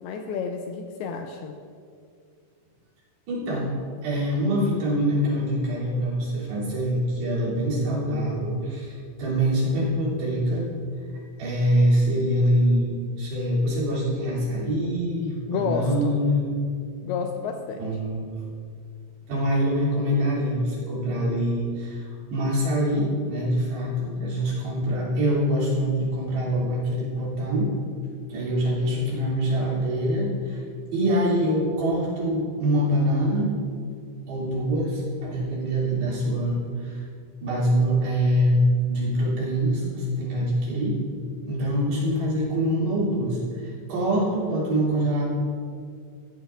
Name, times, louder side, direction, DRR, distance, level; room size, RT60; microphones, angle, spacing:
voice 1, 0.0-1.6 15.5-16.2 17.0-17.9, left 5 dB, 85° left, 4 dB, 2.2 m, -30 dB
voice 2, 3.3-10.7 11.4-16.5 17.8-18.3 19.3-22.0 22.3-27.7 28.3-30.6 30.9-33.5 34.3-37.0 37.4-38.6 38.9-41.0 41.5-45.3, equal, 70° right, -7 dB, 5.1 m, -24 dB
15.5 x 12.5 x 2.5 m, 2.2 s
omnidirectional pair, 5.1 m